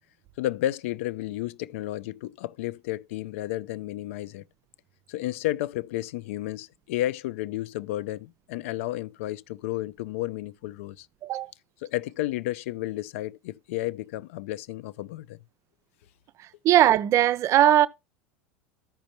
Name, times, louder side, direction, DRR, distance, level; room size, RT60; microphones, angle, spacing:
voice 1, 0.4-4.4 5.1-11.1 11.8-15.4, left 15 dB, 70° left, 0.4 m, -32 dB
voice 2, 16.6-17.9, right 12 dB, 45° right, 0.5 m, -19 dB
13.5 x 5.2 x 2.8 m
hypercardioid pair, 85°, 7 cm